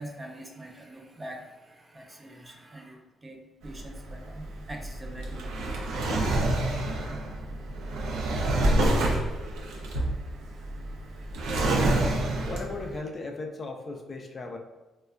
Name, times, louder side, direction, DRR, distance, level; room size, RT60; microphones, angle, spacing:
voice 1, 0.0-3.4 3.6-5.7, right 1 dB, 20° right, 1 dB, 0.5 m, -44 dB
Drawer open or close, 3.6-12.9, right 1 dB, 85° right, 0.5 m, -27 dB
voice 2, 12.5-14.6, left 3 dB, 40° left, 3 dB, 0.3 m, -36 dB
3.2 x 2.2 x 2.4 m, 1.1 s
cardioid pair, 90°, 0 cm